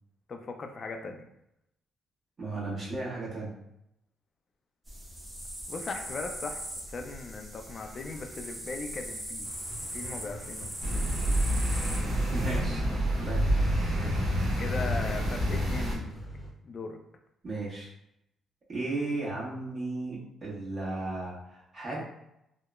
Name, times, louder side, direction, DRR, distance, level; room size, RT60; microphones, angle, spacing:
voice 1, 0.3-1.2 5.7-9.5 9.8-10.7 12.9-13.3 14.6-16.1 16.6-17.0, left 3 dB, 45° left, 5 dB, 0.4 m, -38 dB
voice 2, 2.4-3.5 12.3-12.8 13.1-13.4 17.4-17.9 18.7-22.0, right 2 dB, 45° right, -6 dB, 1.1 m, -35 dB
sound 1, 4.9-12.6, right 1 dB, 20° right, 0.8 m, -40 dB
sound 2, 9.4-16.5, equal, 15° left, 0.7 m, -45 dB
sound 3, 10.8-15.9, equal, 70° right, 1.0 m, -28 dB
2.9 x 2.0 x 2.3 m, 0.81 s
cardioid pair, 90°, 0 cm